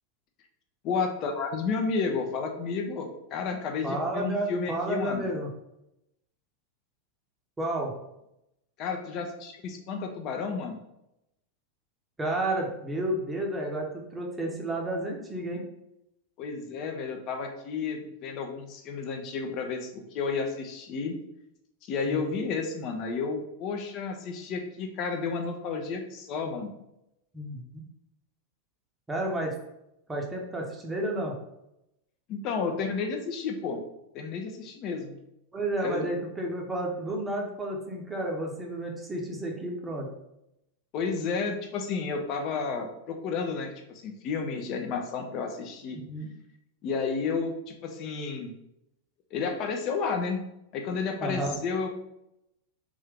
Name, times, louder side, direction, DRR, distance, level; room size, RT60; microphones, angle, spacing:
voice 1, 0.8-5.3 8.8-10.8 16.4-21.1 21.8-26.7 32.3-33.8 34.1-35.2 35.8-36.1 40.9-46.0 46.8-48.5 49.3-50.4 50.7-51.9, left 5 dB, 40° left, 4 dB, 0.6 m, -31 dB
voice 2, 3.8-5.5 7.6-7.9 12.2-15.6 22.1-22.2 27.3-27.8 29.1-29.5 30.1-31.3 35.5-40.1 45.9-46.3 51.2-51.6, right 1 dB, 10° right, -1 dB, 0.9 m, -31 dB
3.5 x 2.7 x 3.6 m, 0.85 s
figure-of-eight pair, 90°, 0 cm